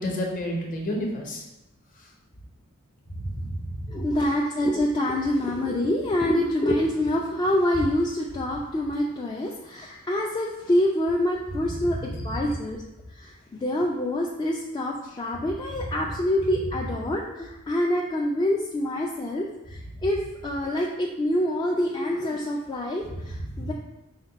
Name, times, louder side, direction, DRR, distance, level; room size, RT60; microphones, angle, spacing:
voice 1, 0.0-1.4 3.1-3.9 11.8-11.9 23.6-23.7, equal, 40° left, 0 dB, 0.8 m, -30 dB
voice 2, 3.9-12.8 13.1-23.7, left 1 dB, 20° left, -2 dB, 0.3 m, -26 dB
5.1 x 2.2 x 3.9 m, 0.97 s
head